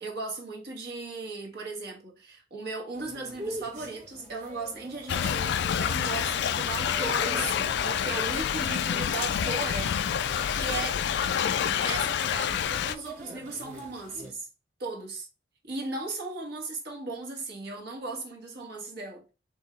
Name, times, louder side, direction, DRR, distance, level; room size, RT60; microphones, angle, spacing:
voice 1, 0.0-10.0 10.5-11.0 11.6-14.5 14.8-15.3 15.6-19.3, right 3 dB, 60° right, 1.4 m, -37 dB
sound 1, 2.9-14.3, right 1 dB, 40° right, 1.5 m, -45 dB
Thunder / Rain, 5.1-13.0, left 8 dB, 65° left, 0.3 m, -28 dB
4.5 x 3.6 x 3.2 m
head